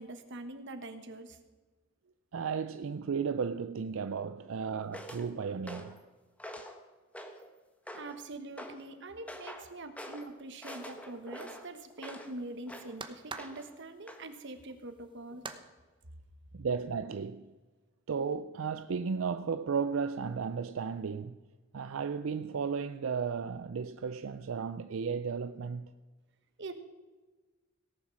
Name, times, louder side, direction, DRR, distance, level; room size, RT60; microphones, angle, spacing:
voice 1, 0.0-1.4 7.9-15.4 26.6-26.7, right 2 dB, 65° right, 1.3 m, -44 dB
voice 2, 2.3-6.0 16.5-17.5 18.1-21.4 21.7-25.9, right 6 dB, 85° right, 0.4 m, -34 dB
sound 1, 4.9-5.2 5.7-6.0 6.4-6.8 7.1-7.5 7.9-8.2 8.6-8.8 9.3-9.7 10.0-10.3 10.6-12.3 12.7-12.9 13.4-13.7 14.1-14.2, equal, 5° left, 1.3 m, -45 dB
sound 2, 10.5-15.6, right 4 dB, 25° right, 0.9 m, -49 dB
17.5 x 7.3 x 6.2 m
head